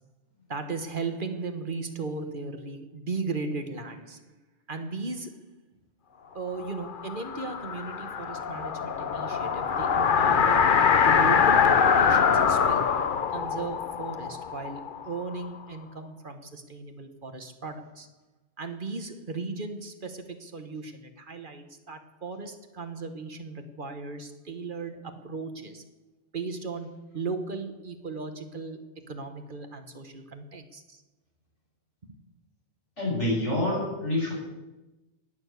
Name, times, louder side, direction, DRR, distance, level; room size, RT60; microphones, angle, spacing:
voice 1, 0.5-4.3 4.7-5.7 6.3-13.0 13.3-18.1 18.6-25.8 26.3-31.0, right 4 dB, 45° right, 7 dB, 1.4 m, -36 dB
sound 1, 6.6-15.5, left 6 dB, 50° left, 0.9 m, -23 dB
voice 2, 33.0-34.3, left 1 dB, 75° left, -5 dB, 7.5 m, -27 dB
18.5 x 7.0 x 8.1 m, 1.1 s
omnidirectional pair, 1.2 m